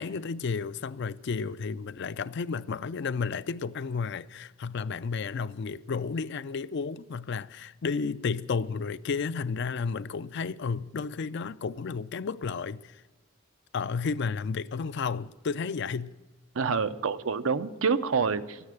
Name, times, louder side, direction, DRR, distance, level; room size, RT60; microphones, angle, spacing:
voice 1, 0.0-13.0 13.7-16.1, left 5 dB, 60° left, 0.4 m, -32 dB
voice 2, 16.6-18.6, right 5 dB, 80° right, 0.7 m, -27 dB
13.5 x 9.7 x 8.9 m
head